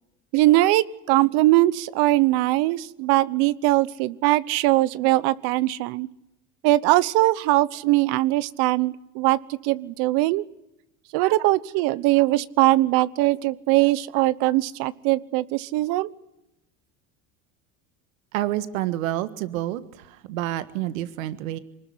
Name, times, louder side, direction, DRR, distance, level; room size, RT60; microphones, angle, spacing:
voice 1, 0.3-6.1 6.6-10.4 11.1-16.1, right 17 dB, 70° right, 17 dB, 1.1 m, -21 dB
voice 2, 18.3-21.6, right 14 dB, 90° right, 12 dB, 1.7 m, -28 dB
24.0 x 20.0 x 9.7 m, 0.89 s
supercardioid pair, 100°, 39 cm